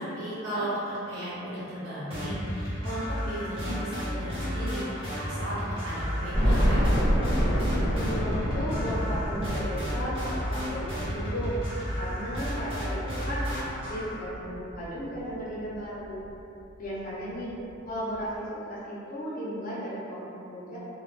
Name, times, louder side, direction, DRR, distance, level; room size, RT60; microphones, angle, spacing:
voice 1, 0.0-5.6 5.8-6.9, right 1 dB, 70° right, -11 dB, 1.0 m, -35 dB
sound 1, 2.1-14.2, equal, 25° right, 0.9 m, -33 dB
sound 2, 6.3-15.2 15.7-15.8 16.2-16.3 17.5-17.6 17.9-18.0, equal, 5° left, 0.7 m, -28 dB
voice 2, 7.9-11.6 12.0-16.2 16.8-17.5 17.9-20.8, equal, 40° left, -8 dB, 0.5 m, -35 dB
2.1 x 2.1 x 3.0 m, 2.8 s
head